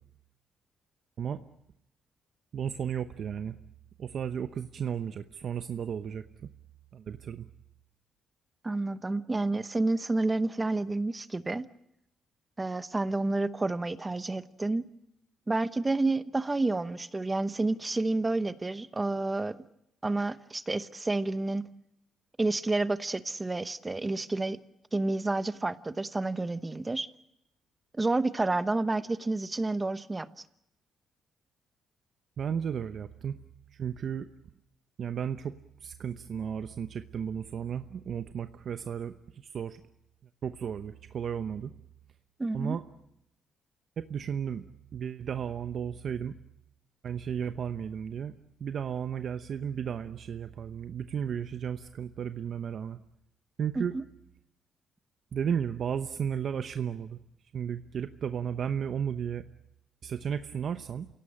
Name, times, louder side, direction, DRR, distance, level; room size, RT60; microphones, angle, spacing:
voice 1, 2.5-3.6 4.0-6.5 6.9-7.5 32.4-33.4 33.7-34.3 35.0-35.6 35.8-39.8 40.4-41.7 42.5-42.8 44.0-44.6 44.9-46.4 47.0-48.3 48.6-53.0 53.6-53.9 55.3-57.2 57.5-59.4 60.0-61.1, right 8 dB, 55° right, 9 dB, 0.9 m, -34 dB
voice 2, 8.6-11.7 12.6-14.9 15.5-19.6 20.0-21.7 22.4-24.6 24.9-27.1 27.9-30.4 42.4-42.8 53.7-54.0, right 2 dB, 20° right, 14 dB, 1.0 m, -30 dB
27.5 x 17.5 x 8.6 m, 0.81 s
cardioid pair, 90°, 0 cm